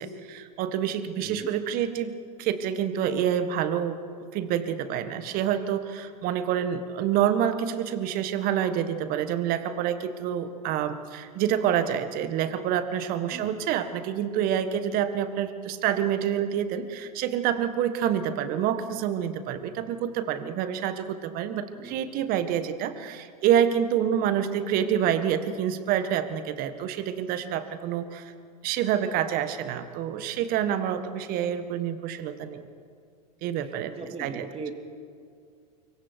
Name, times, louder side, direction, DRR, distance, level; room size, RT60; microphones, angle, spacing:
voice 1, 0.0-2.1 2.4-4.0 4.3-28.3 28.6-32.7 33.4-33.9 34.2-34.5, right 9 dB, 45° right, 11 dB, 1.7 m, -27 dB
voice 2, 1.2-1.5 13.3-13.5 21.7-21.9 33.6-34.7, right 4 dB, 25° right, 5 dB, 2.8 m, -40 dB
25.0 x 23.5 x 4.7 m, 2.3 s
hypercardioid pair, 95°, 21 cm